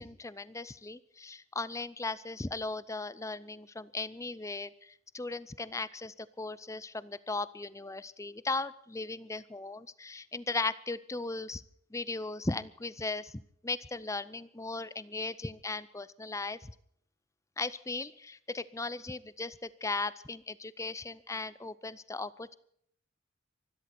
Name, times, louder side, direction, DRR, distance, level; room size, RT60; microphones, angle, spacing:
voice 1, 0.0-11.6 11.9-16.7 17.6-22.5, left 3 dB, 15° left, 17 dB, 0.6 m, -37 dB
24.5 x 13.0 x 4.3 m, 0.67 s
head